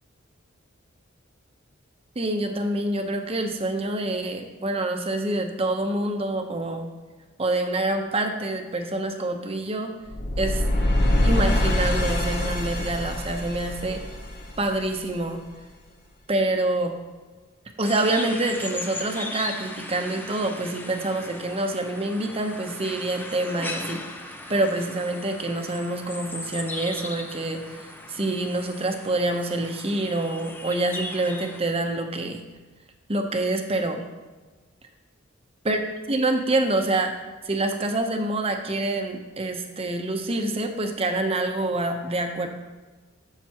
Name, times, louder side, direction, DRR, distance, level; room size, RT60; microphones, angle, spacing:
voice 1, 2.2-6.9 7.4-9.9 10.4-10.6 11.2-14.0 14.6-15.4 16.3-17.0 17.8-24.0 24.5-32.4 33.1-34.0 35.6-35.8 36.1-37.1 37.4-42.5, right 2 dB, 30° right, 5 dB, 0.8 m, -26 dB
sound 1, 10.1-15.1, left 1 dB, 60° left, 1.5 m, -24 dB
sound 2, 17.8-31.6, left 2 dB, 10° left, 0.6 m, -38 dB
12.0 x 6.7 x 2.9 m, 1.3 s
head